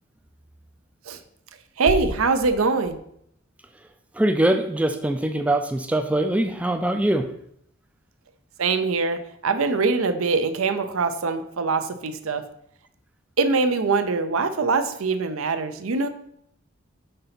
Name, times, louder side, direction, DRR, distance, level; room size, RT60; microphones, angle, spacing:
voice 1, 1.8-3.0 8.6-12.4 13.4-16.1, right 4 dB, 85° right, 9 dB, 0.6 m, -23 dB
voice 2, 4.2-7.3, right 1 dB, 5° right, 5 dB, 0.3 m, -22 dB
5.4 x 3.9 x 5.8 m, 0.72 s
head